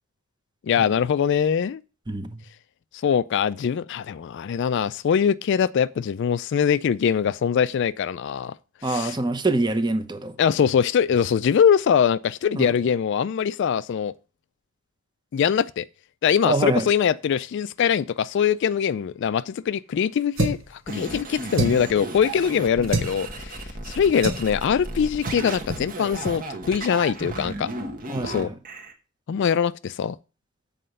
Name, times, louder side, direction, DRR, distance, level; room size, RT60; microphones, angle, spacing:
voice 1, 0.6-1.8 2.9-8.5 8.8-9.2 10.4-14.1 15.3-15.9 16.2-27.7 28.2-28.5 29.3-30.2, left 7 dB, 55° left, 0.3 m, -22 dB
voice 2, 2.1-2.4 8.8-10.3 12.5-12.7 16.4-16.9 22.8-22.9 28.1-28.5, right 2 dB, 20° right, 0.8 m, -25 dB
sound 1, 20.4-20.7 21.5-21.9 22.9-23.1 24.2-24.5 25.2-25.4 25.7-25.9 26.2-26.4, right 2 dB, 65° right, 1.4 m, -26 dB
sound 2, 20.9-28.9, right 2 dB, 40° right, 1.3 m, -34 dB
7.7 x 5.0 x 6.5 m
head